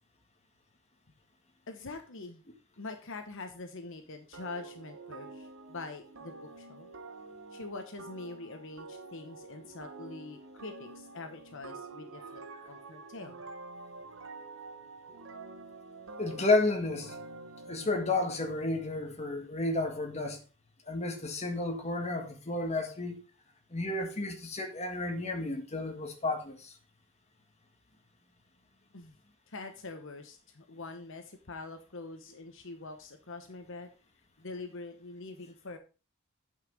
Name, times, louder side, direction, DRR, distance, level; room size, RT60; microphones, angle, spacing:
voice 1, 1.7-2.4 2.8-6.9 7.5-12.4 12.7-13.4 28.9-29.1 29.5-33.9 34.4-35.8, left 3 dB, 65° left, 1.1 m, -44 dB
sound 1, 4.3-18.9, right 3 dB, 65° right, 1.1 m, -48 dB
voice 2, 16.2-17.2 17.7-20.4 20.9-23.2 23.7-26.7, left 2 dB, 30° left, 1.7 m, -31 dB
9.0 x 5.8 x 5.0 m
head